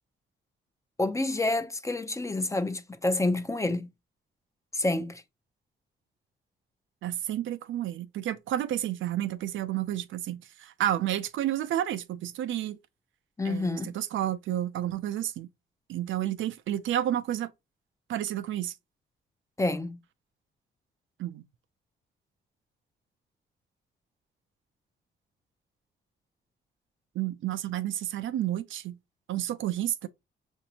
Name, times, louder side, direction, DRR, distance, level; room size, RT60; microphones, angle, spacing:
voice 1, 1.0-3.9 4.7-5.2 13.4-13.9 19.6-20.0, left 2 dB, 15° left, 0.6 m, -28 dB
voice 2, 7.0-12.8 13.4-15.5 15.9-17.5 18.1-18.7 21.2-21.4 27.2-29.0 29.3-30.1, right 12 dB, 85° right, 0.5 m, -31 dB
5.8 x 2.6 x 2.7 m
cardioid pair, 85°, 20 cm